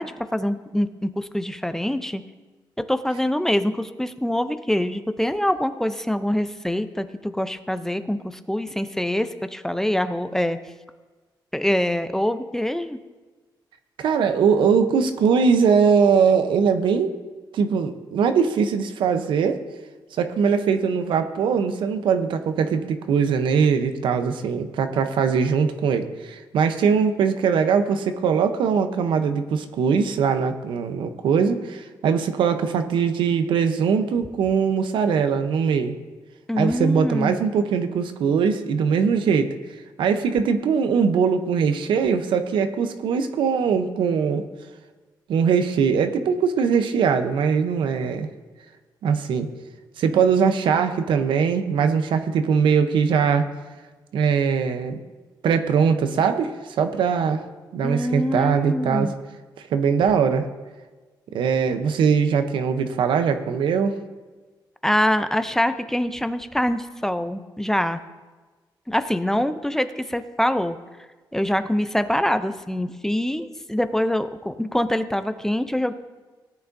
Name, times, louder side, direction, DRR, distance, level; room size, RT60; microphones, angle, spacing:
voice 1, 0.0-2.2 2.9-10.6 11.5-13.0 36.5-37.3 57.8-59.1 64.8-68.0 68.9-70.8 71.3-75.9, left 1 dB, 5° left, 10 dB, 0.5 m, -24 dB
voice 2, 14.0-17.2 17.5-19.6 20.2-36.0 36.6-39.5 40.0-44.4 45.3-48.3 49.0-49.5 50.0-53.5 54.1-55.0 55.4-57.4 57.7-59.1 59.7-60.4 61.3-63.9, right 6 dB, 85° right, 8 dB, 0.8 m, -21 dB
17.5 x 9.6 x 2.7 m, 1.3 s
cardioid pair, 100°, 8 cm